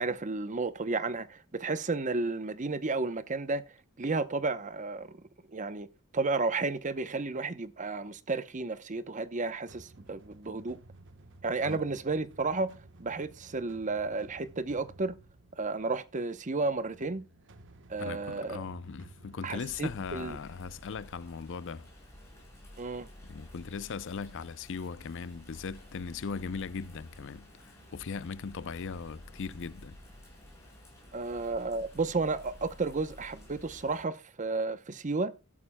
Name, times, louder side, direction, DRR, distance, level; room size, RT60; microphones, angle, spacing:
voice 1, 0.0-3.6 4.0-5.1 5.5-5.9 6.1-10.8 11.4-12.7 13.0-15.2 15.6-17.2 17.9-18.6 19.4-20.4 22.8-23.1 31.1-35.3, right 3 dB, 35° right, 0.8 m, -32 dB
sound 1, 9.7-21.6, right 2 dB, 55° right, 1.1 m, -55 dB
voice 2, 18.0-21.9 23.2-30.0, left 5 dB, 55° left, 0.5 m, -39 dB
Bird vocalization bird call bird song / Rain, 19.4-34.0, left 1 dB, 15° left, 7.0 m, -52 dB
13.5 x 11.0 x 2.2 m
head